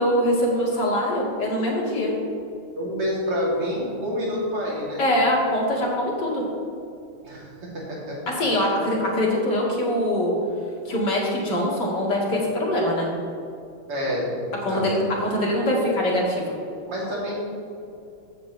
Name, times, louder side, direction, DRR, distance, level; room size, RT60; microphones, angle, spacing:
voice 1, 0.0-2.1 5.0-6.4 8.3-10.3 10.9-13.1 14.6-16.4, left 1 dB, 50° left, -4 dB, 2.7 m, -23 dB
voice 2, 2.8-5.0 7.2-8.3 13.9-14.9 16.9-17.3, equal, 85° right, -6 dB, 3.9 m, -28 dB
15.5 x 8.6 x 3.3 m, 2.6 s
omnidirectional pair, 2.4 m